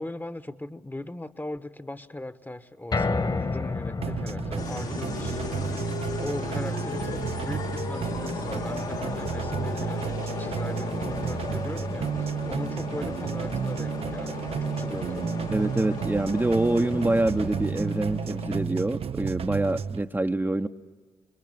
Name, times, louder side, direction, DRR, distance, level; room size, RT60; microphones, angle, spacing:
voice 1, 0.0-5.8 6.2-15.4, left 1 dB, 15° left, 1.3 m, -38 dB
sound 1, 2.9-15.2 15.6-15.7 16.1-16.2, left 3 dB, 40° left, 1.9 m, -35 dB
sound 2, 4.0-20.0, right 8 dB, 55° right, 0.8 m, -32 dB
sound 3, 4.6-18.8, left 5 dB, 90° left, 3.1 m, -36 dB
voice 2, 15.5-20.7, right 2 dB, 15° right, 1.0 m, -25 dB
29.0 x 22.5 x 8.8 m
hypercardioid pair, 45°, 12 cm